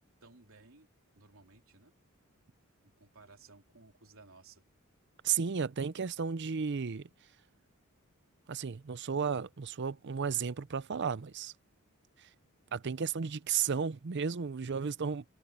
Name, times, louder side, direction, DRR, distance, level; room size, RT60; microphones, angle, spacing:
voice 1, 0.2-0.9 1.1-2.0 2.8-4.6, right 3 dB, 70° right, 3.3 m, -58 dB
voice 2, 5.2-7.1 8.5-11.5 12.2-12.3 12.7-15.2, right 6 dB, 55° right, 0.6 m, -33 dB
head